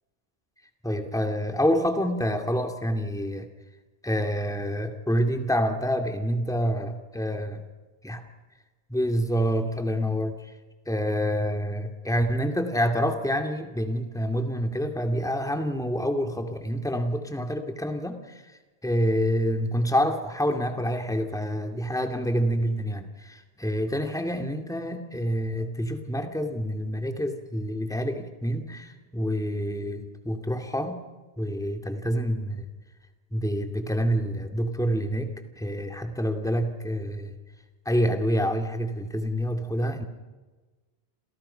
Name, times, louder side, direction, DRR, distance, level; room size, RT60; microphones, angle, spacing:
voice 1, 0.8-3.5 4.0-7.6 8.0-8.2 8.9-10.5 10.9-18.4 18.8-31.0 31.4-32.7 33.3-37.4 37.9-40.0, equal, 5° left, 5 dB, 2.3 m, -27 dB
30.0 x 28.0 x 5.7 m, 1.2 s
omnidirectional pair, 1.0 m